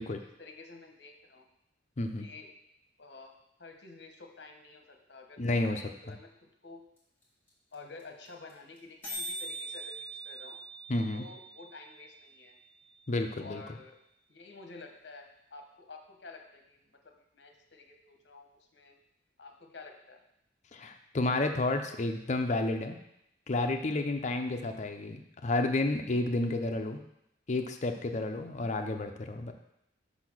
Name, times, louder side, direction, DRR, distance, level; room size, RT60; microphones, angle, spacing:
voice 1, 0.4-1.5 2.2-2.5 3.0-3.3 3.6-6.3 6.6-6.8 7.7-10.6 11.1-12.6 13.3-14.0 14.3-19.0 19.4-20.2 28.8-29.2, left 3 dB, 65° left, 3 dB, 0.9 m, -50 dB
voice 2, 2.0-2.3 5.4-5.8 6.1-6.2 10.9-11.2 13.1-13.6 20.7-23.0 23.5-27.0 27.5-29.5, left 2 dB, 40° left, 6 dB, 0.5 m, -31 dB
sound 1, 7.0-7.1 7.2-7.3 7.5-7.7 8.0-8.1 8.3-8.5 8.8-8.9 9.0-13.0, right 1 dB, 10° left, 2.1 m, -43 dB
5.6 x 4.1 x 6.0 m, 0.80 s
head